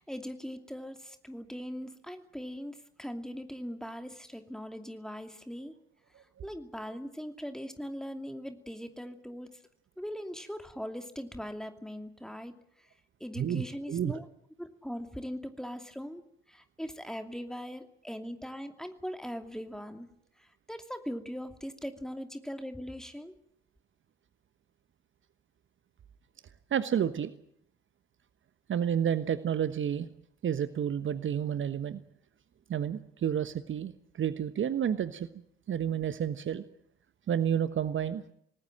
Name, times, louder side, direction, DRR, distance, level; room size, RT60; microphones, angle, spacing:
voice 1, 0.0-5.7 6.4-9.5 10.0-12.9 13.2-14.3 14.6-20.1 20.4-23.3, equal, ahead, 6 dB, 2.6 m, -40 dB
voice 2, 13.9-14.2 26.7-27.3 28.7-30.1 30.4-32.0 32.7-35.3 35.7-36.6 37.3-38.2, right 9 dB, 40° right, 12 dB, 1.2 m, -30 dB
26.5 x 19.0 x 7.6 m, 0.70 s
figure-of-eight pair, 50°, 31 cm